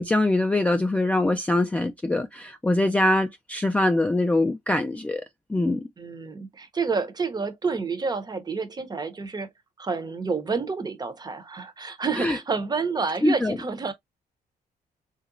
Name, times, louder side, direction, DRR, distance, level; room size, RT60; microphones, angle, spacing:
voice 1, 0.0-5.2 5.5-5.8 12.2-12.4 13.2-13.6, left 1 dB, 10° left, 0.3 m, -23 dB
voice 2, 6.0-9.5 9.8-13.9, right 4 dB, 25° right, 0.7 m, -29 dB
3.1 x 2.9 x 2.5 m
cardioid pair, 110°, 16 cm